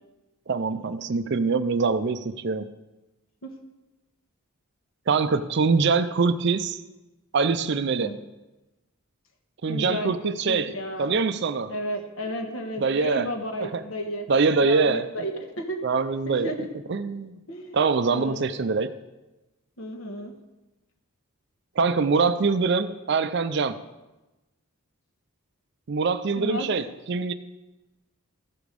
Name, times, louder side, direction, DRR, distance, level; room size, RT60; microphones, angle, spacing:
voice 1, 0.5-2.7 5.1-6.8 7.3-8.2 9.6-10.7 11.0-11.7 12.8-13.3 13.6-13.8 14.3-15.1 15.8-16.5 16.9-17.4 17.7-18.9 21.8-23.8 25.9-27.3, right 4 dB, 50° right, 12 dB, 0.4 m, -24 dB
voice 2, 9.7-11.2 11.7-15.3 15.6-16.7 17.5-18.5 19.8-20.3 26.3-26.7, equal, 60° left, 4 dB, 1.3 m, -33 dB
14.5 x 4.9 x 5.2 m, 1.1 s
head